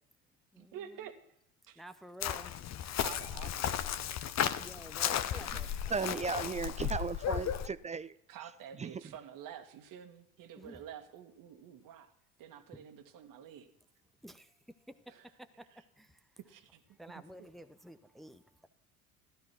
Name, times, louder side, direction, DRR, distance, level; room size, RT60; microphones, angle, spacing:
voice 1, 0.6-1.1 1.7-1.8 3.0-3.9 5.0-5.8 8.3-12.1 12.4-13.7 15.1-15.3 15.7-15.8 16.4-16.8 17.1-17.5, right 9 dB, 50° right, 2.1 m, -49 dB
voice 2, 1.8-2.5 4.6-6.4 6.8-7.0 10.6-10.8 12.7-12.8 14.2-14.5 14.9-15.1 15.4-15.7 16.0-16.2 17.0-18.7, right 1 dB, ahead, 1.0 m, -51 dB
Chirp tweet, 2.2-7.7, left 10 dB, 40° left, 1.1 m, -34 dB
voice 3, 5.9-8.1 8.8-8.9, right 5 dB, 15° right, 0.6 m, -35 dB
15.5 x 12.5 x 6.2 m
figure-of-eight pair, 65°, 41 cm